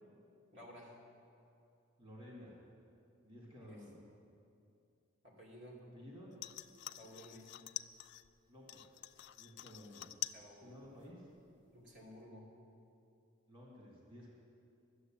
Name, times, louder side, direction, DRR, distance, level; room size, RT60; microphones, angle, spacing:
voice 1, 0.5-1.0 3.7-3.8 5.2-5.8 6.9-7.5 10.3-10.8 11.7-12.5, equal, 60° right, -4 dB, 2.5 m, -54 dB
voice 2, 2.0-2.6 3.2-4.0 5.9-6.3 8.5-9.0 9.4-10.1 10.6-11.3 13.5-14.3, left 1 dB, 25° right, -4 dB, 2.2 m, -54 dB
sound 1, 6.3-8.3 8.7-10.5 10.8-11.3 11.7-11.8, left 14 dB, 55° left, 0.3 m, -47 dB
12.5 x 7.9 x 7.4 m, 2.6 s
head